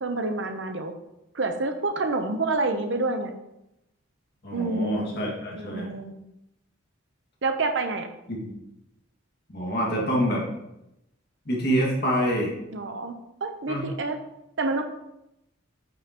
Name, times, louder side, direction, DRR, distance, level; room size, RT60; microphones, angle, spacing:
voice 1, 0.0-0.9 1.3-3.3 4.5-5.2 5.6-6.1 7.4-8.1 12.7-13.1 13.4-14.2 14.6-14.8, right 3 dB, 60° right, 6 dB, 0.8 m, -28 dB
voice 2, 4.4-5.9 8.3-8.5 9.5-10.5 11.5-12.5 13.7-13.9, equal, 50° left, -2 dB, 2.1 m, -26 dB
8.9 x 5.5 x 3.0 m, 0.86 s
head